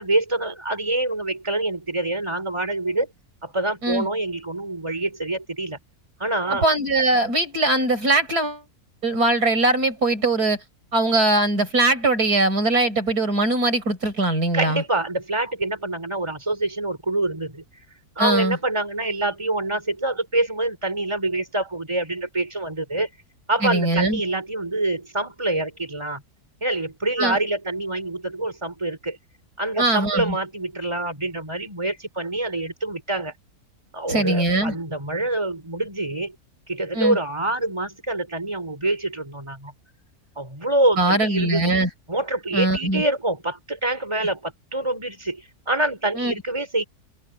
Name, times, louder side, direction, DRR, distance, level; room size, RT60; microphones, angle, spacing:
voice 1, 0.0-3.1 3.4-5.8 6.2-6.7 14.5-17.6 18.2-23.1 23.5-26.2 26.6-29.2 29.6-33.3 33.9-36.3 36.7-39.7 40.4-41.7 42.1-46.8, right 2 dB, 15° right, 5.0 m, -26 dB
voice 2, 6.6-8.6 9.0-10.6 10.9-14.8 18.2-18.6 23.6-24.2 27.2-27.4 29.8-30.4 34.1-34.8 36.9-37.2 41.0-41.9 42.5-43.0 46.2-46.3, right 2 dB, 70° right, 6.1 m, -21 dB
omnidirectional pair, 1.7 m